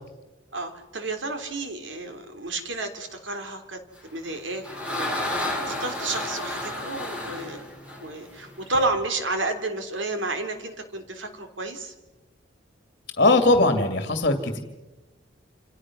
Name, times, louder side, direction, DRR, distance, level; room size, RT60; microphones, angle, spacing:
voice 1, 0.5-3.8 4.1-7.6 8.0-11.9, right 2 dB, 80° right, 6 dB, 3.4 m, -31 dB
sound 1, 4.2-8.8, left 1 dB, 5° right, 6.5 m, -31 dB
voice 2, 13.2-14.6, left 2 dB, 50° left, 6 dB, 2.4 m, -20 dB
28.5 x 27.5 x 6.2 m, 1.1 s
head